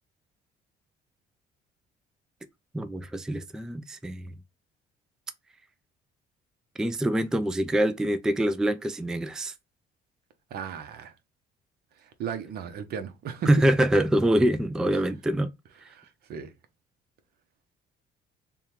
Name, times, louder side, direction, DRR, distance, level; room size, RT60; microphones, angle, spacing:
voice 1, 2.7-4.3 6.8-9.5 13.5-15.5, right 1 dB, 5° right, 0.3 m, -25 dB
voice 2, 10.5-11.1 12.2-13.5 15.9-16.5, right 7 dB, 65° right, 0.8 m, -35 dB
3.5 x 2.3 x 4.4 m
cardioid pair, 110°, 17 cm